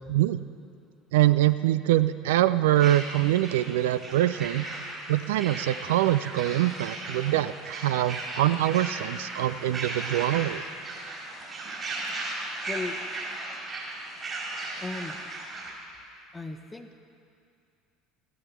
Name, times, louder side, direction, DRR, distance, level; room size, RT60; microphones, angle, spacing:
voice 1, 0.1-0.4 1.1-4.7 5.1-10.6, right 14 dB, 70° right, 14 dB, 0.3 m, -24 dB
sound 1, 2.7-15.7, right 2 dB, 35° right, 4.0 m, -36 dB
voice 2, 12.7-13.0 14.8-15.2 16.3-16.9, left 3 dB, 15° left, 7 dB, 1.0 m, -36 dB
14.5 x 11.0 x 6.0 m, 2.5 s
figure-of-eight pair, 65°, 0 cm